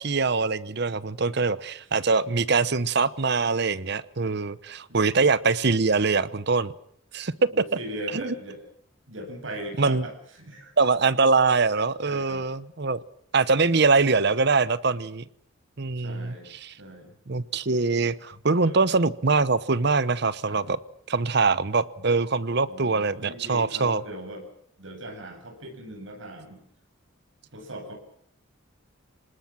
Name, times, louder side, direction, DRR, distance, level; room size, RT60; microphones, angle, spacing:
voice 1, 0.0-6.7 7.1-7.5 8.1-8.3 9.8-10.0 10.8-13.0 13.3-15.2 15.8-16.7 17.3-20.8 21.1-24.0, right 4 dB, 55° right, 17 dB, 0.9 m, -23 dB
voice 2, 4.9-5.3 7.5-8.6 9.1-10.1 10.4-10.7 12.0-12.4 16.0-17.1 18.6-18.8 20.5-20.6 22.7-24.4 24.8-26.6 27.5-27.9, right 1 dB, 70° right, 3 dB, 7.9 m, -39 dB
26.5 x 19.5 x 7.4 m, 0.68 s
head